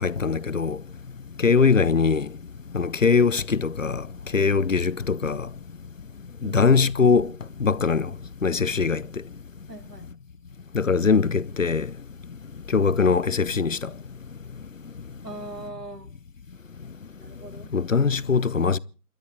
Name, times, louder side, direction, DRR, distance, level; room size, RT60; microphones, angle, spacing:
voice 1, 0.0-0.8 1.4-2.3 2.7-4.0 4.3-5.5 6.5-7.3 7.6-8.1 8.4-9.0 10.7-11.9 12.7-13.9 17.7-18.8, left 5 dB, 55° left, 0.7 m, -21 dB
voice 2, 9.7-10.1 15.2-16.1 17.2-17.7, right 2 dB, 85° right, 2.6 m, -40 dB
28.5 x 12.5 x 3.9 m
figure-of-eight pair, 155°, 47 cm